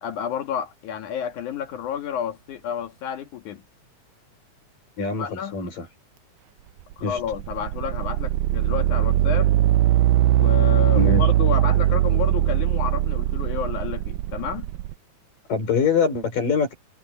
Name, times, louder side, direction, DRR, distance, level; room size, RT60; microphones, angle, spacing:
voice 1, 0.0-3.6 5.2-5.6 7.0-9.5 10.3-14.7, left 8 dB, 70° left, 3.2 m, -30 dB
voice 2, 5.0-5.9 7.0-7.2 11.0-11.3 15.5-16.7, left 5 dB, 90° left, 6.9 m, -23 dB
sound 1, 6.9-14.9, right 13 dB, 80° right, 2.1 m, -20 dB
omnidirectional pair, 3.7 m